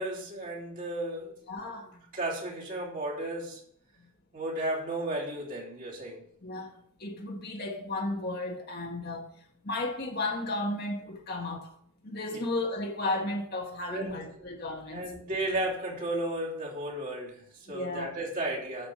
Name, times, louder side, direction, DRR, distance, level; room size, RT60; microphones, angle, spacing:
voice 1, 0.0-1.4 1.9-3.6 4.3-6.2 12.3-12.4 13.9-14.1 14.9-18.9, right 1 dB, 40° right, 3.0 m, -34 dB
voice 2, 1.5-1.9 6.4-6.7 7.0-9.3 9.6-11.7 12.0-15.0 17.7-18.1, left 2 dB, 45° left, 1.5 m, -34 dB
12.0 x 5.0 x 6.0 m
head